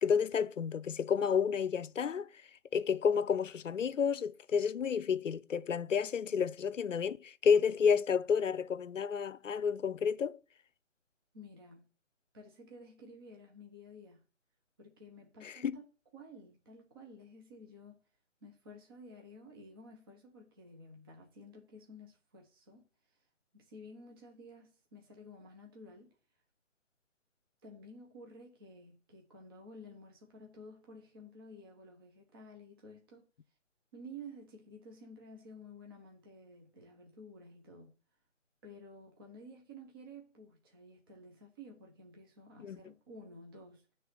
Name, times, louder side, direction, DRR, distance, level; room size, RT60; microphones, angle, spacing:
voice 1, 0.0-2.3 2.7-10.4 15.4-15.8 42.6-42.8, left 6 dB, 90° left, 0.6 m, -30 dB
voice 2, 11.3-11.8 12.3-14.2 14.8-15.8 16.1-18.0 18.4-22.9 23.5-26.1 27.6-33.3 33.9-37.9 38.6-43.8, equal, 20° right, 0.8 m, -53 dB
9.5 x 3.4 x 5.7 m
figure-of-eight pair, 155°, 37 cm